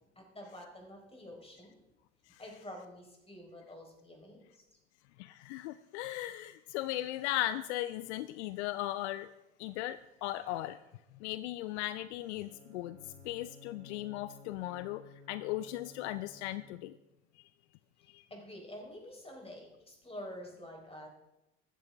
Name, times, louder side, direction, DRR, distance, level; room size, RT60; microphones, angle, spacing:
voice 1, 0.2-1.8 2.4-4.4 18.3-21.1, left 1 dB, 15° left, 1 dB, 4.2 m, -48 dB
voice 2, 5.2-9.3 9.6-10.8 11.2-13.0 13.2-15.0 15.3-16.9 18.1-18.2, left 14 dB, 65° left, 14 dB, 0.6 m, -37 dB
Bowed string instrument, 12.4-17.2, left 3 dB, 90° right, 1.6 m, -56 dB
14.5 x 12.5 x 3.5 m, 0.94 s
figure-of-eight pair, 65°, 36 cm